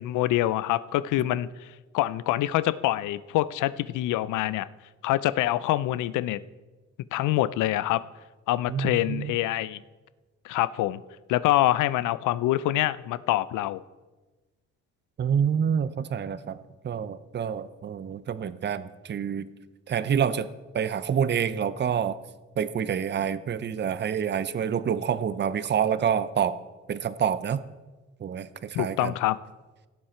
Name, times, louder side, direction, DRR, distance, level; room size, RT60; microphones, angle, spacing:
voice 1, 0.0-1.7 1.9-4.7 5.0-6.4 7.1-8.0 8.5-9.8 10.4-11.0 11.3-13.8 28.7-29.4, left 15 dB, 85° left, 17 dB, 0.5 m, -25 dB
voice 2, 8.7-9.3 15.2-16.6 16.8-19.5 19.9-20.5 20.7-22.2 22.6-26.6 26.9-27.6 28.2-29.1, right 8 dB, 35° right, 14 dB, 0.6 m, -27 dB
16.5 x 7.4 x 4.5 m, 1.2 s
cardioid pair, 90°, 30 cm